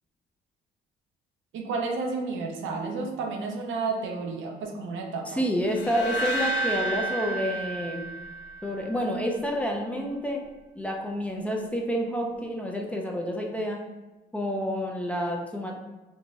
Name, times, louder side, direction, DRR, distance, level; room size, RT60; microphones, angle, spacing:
voice 1, 1.5-5.4, right 4 dB, 80° right, 2 dB, 0.5 m, -31 dB
voice 2, 5.3-8.0 8.6-10.4 10.8-13.8 14.3-15.7, equal, 5° left, 0 dB, 0.4 m, -29 dB
sound 1, 5.7-8.9, right 2 dB, 85° left, 0.5 m, -31 dB
3.8 x 2.5 x 2.3 m, 1.2 s
cardioid pair, 90°, 20 cm